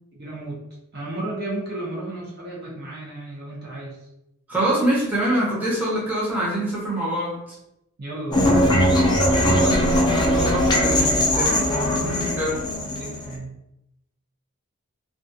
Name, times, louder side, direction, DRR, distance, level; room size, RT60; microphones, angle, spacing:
voice 1, 0.1-4.1 8.0-8.7 11.9-12.2 13.0-13.5, right 2 dB, 50° right, -4 dB, 0.7 m, -34 dB
voice 2, 4.5-7.6 9.5-12.5, right 1 dB, 10° right, -8 dB, 0.7 m, -25 dB
sound 1, 8.3-13.4, left 1 dB, 20° left, 0.4 m, -20 dB
2.3 x 2.3 x 2.6 m, 0.86 s
head